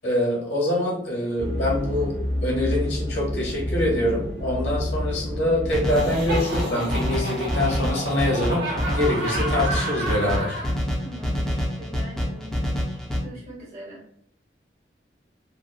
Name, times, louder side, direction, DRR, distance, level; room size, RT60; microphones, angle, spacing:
voice 1, 0.0-2.1 2.4-10.6, left 1 dB, 80° left, -3 dB, 1.1 m, -25 dB
sound 1, 1.4-6.9, left 1 dB, 70° right, 0.6 m, -29 dB
sound 2, 5.7-13.2, equal, 5° left, 0.4 m, -27 dB
Laughter, 5.9-10.7, right 2 dB, 90° right, 1.0 m, -31 dB
voice 2, 11.0-12.9 13.2-14.0, right 1 dB, 35° right, -4 dB, 0.7 m, -42 dB
3.1 x 2.0 x 2.3 m, 0.65 s
head